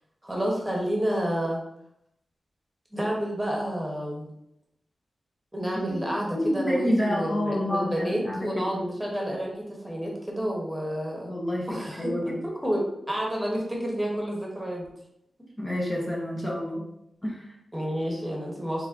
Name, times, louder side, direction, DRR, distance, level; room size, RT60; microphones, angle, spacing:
voice 1, 0.2-1.6 2.9-4.3 5.5-11.3 11.7-14.8 17.7-18.9, equal, 15° right, -2 dB, 1.3 m, -30 dB
voice 2, 5.9-8.8 9.2-9.3 11.2-12.4 15.6-16.8 17.2-17.5, left 1 dB, 25° left, -3 dB, 1.1 m, -29 dB
4.7 x 3.4 x 2.8 m, 0.78 s
cardioid pair, 60°, 0 cm